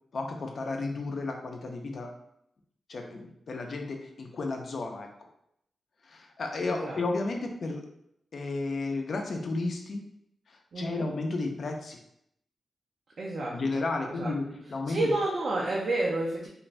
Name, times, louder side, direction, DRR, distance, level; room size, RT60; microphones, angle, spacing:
voice 1, 0.1-2.1 2.9-5.1 6.0-7.9 8.3-10.0 10.5-12.0 13.5-15.1, left 3 dB, 60° left, 3 dB, 0.5 m, -33 dB
voice 2, 6.6-7.0 10.7-11.1 13.2-14.3 14.9-16.5, right 2 dB, 65° right, -4 dB, 0.5 m, -30 dB
2.5 x 2.5 x 3.2 m, 0.74 s
cardioid pair, 80°, 0 cm